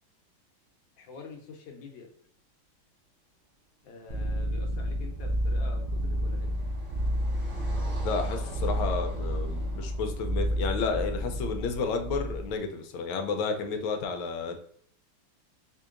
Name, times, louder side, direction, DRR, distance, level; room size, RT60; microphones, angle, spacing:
voice 1, 1.0-2.1 3.8-6.5, left 4 dB, 70° left, 2 dB, 1.4 m, -46 dB
sound 1, 4.1-12.6, equal, 75° right, 1.5 m, -30 dB
Car passing by, 4.8-12.0, right 4 dB, 40° right, 1.4 m, -46 dB
voice 2, 8.0-14.6, left 4 dB, 85° left, 5 dB, 1.4 m, -31 dB
4.4 x 2.7 x 2.4 m, 0.64 s
omnidirectional pair, 2.2 m